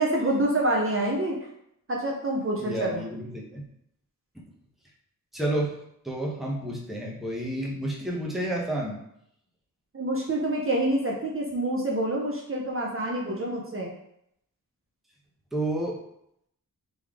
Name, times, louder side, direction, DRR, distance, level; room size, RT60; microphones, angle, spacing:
voice 1, 0.0-1.4 1.9-3.0 9.9-13.9, right 1 dB, 40° right, -2 dB, 0.7 m, -27 dB
voice 2, 2.6-3.6 5.3-5.7 6.0-9.0 15.5-15.9, right 1 dB, ahead, -3 dB, 0.9 m, -30 dB
3.9 x 3.3 x 3.6 m, 0.74 s
wide cardioid pair, 120°, 35 cm